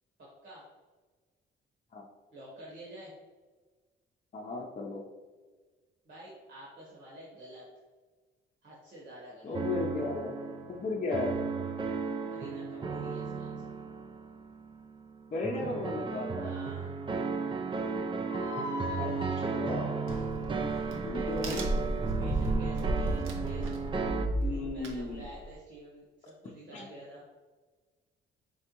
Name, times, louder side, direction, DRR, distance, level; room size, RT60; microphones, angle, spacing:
voice 1, 0.2-0.6 2.3-3.1 6.0-7.7 8.6-9.6 12.3-13.7 16.4-16.9 21.1-21.7 22.0-23.7 24.4-27.2, right 1 dB, 65° right, -6 dB, 1.4 m, -49 dB
voice 2, 4.3-5.0 9.4-10.3 10.7-11.3 15.3-16.5 19.0-20.0 21.0-21.6 24.3-25.2 26.7-26.9, left 3 dB, 35° left, -2 dB, 0.6 m, -35 dB
sound 1, 9.5-24.3, right 4 dB, 25° right, 0.3 m, -35 dB
sound 2, 18.3-21.5, left 4 dB, 90° left, 0.7 m, -42 dB
Crack, 20.1-25.5, right 1 dB, 85° right, 0.7 m, -33 dB
4.5 x 3.3 x 2.9 m, 1.4 s
cardioid pair, 90°, 20 cm